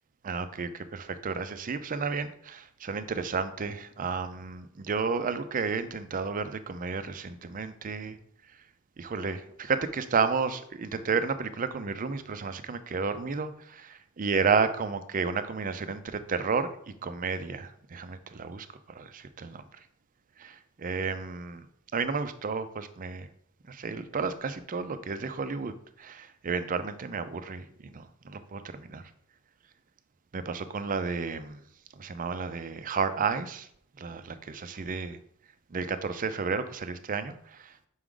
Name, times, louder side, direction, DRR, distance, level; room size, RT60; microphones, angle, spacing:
voice 1, 0.2-8.2 9.0-16.7 17.0-19.6 20.4-21.6 21.9-23.3 23.7-25.7 26.0-29.0 30.3-31.6 32.0-33.7 34.0-35.2 35.7-37.7, right 5 dB, 40° right, 11 dB, 0.5 m, -32 dB
6.0 x 4.8 x 3.8 m, 0.68 s
head